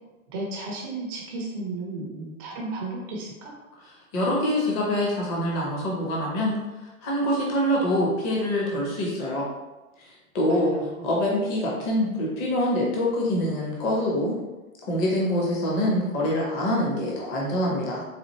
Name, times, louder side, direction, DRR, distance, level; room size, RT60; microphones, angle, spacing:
voice 1, 0.3-3.5 10.5-11.1, right 2 dB, 15° right, -2 dB, 0.4 m, -34 dB
voice 2, 3.9-6.6 7.0-9.5 10.0-10.8 11.0-14.3 14.9-18.0, left 1 dB, 25° left, -3 dB, 0.6 m, -25 dB
4.2 x 2.4 x 2.9 m, 1.1 s
hypercardioid pair, 125°, 43 cm